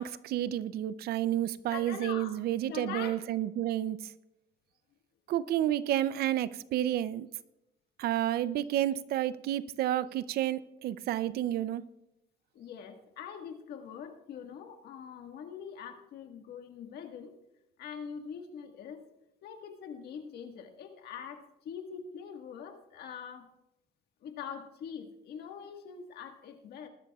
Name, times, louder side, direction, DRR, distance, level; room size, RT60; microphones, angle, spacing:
voice 1, 0.0-4.0 5.3-7.3 8.0-11.9, right 12 dB, 65° right, 0.5 m, -30 dB
voice 2, 1.7-3.2 12.5-17.3 17.8-19.1 19.4-23.5 24.2-26.9, left 7 dB, 70° left, 1.7 m, -43 dB
20.0 x 12.0 x 2.4 m
cardioid pair, 110°, 17 cm